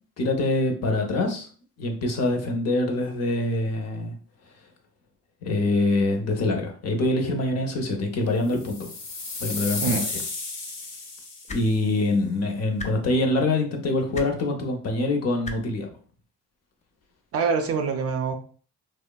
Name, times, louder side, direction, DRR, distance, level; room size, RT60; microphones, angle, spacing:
voice 1, 0.2-1.5 1.8-4.1 5.4-8.9 9.4-9.9 11.5-15.9, left 2 dB, 55° left, 3 dB, 0.7 m, -25 dB
sound 1, 8.5-11.7, left 3 dB, 90° left, 0.8 m, -33 dB
sound 2, 11.5-11.6 12.8-12.9 14.1-14.3 15.4-15.6 16.8-16.9, left 3 dB, 25° left, 0.3 m, -34 dB
voice 2, 17.3-18.4, right 5 dB, 50° right, 6 dB, 0.5 m, -25 dB
3.0 x 2.0 x 2.2 m, 0.41 s
cardioid pair, 90°, 30 cm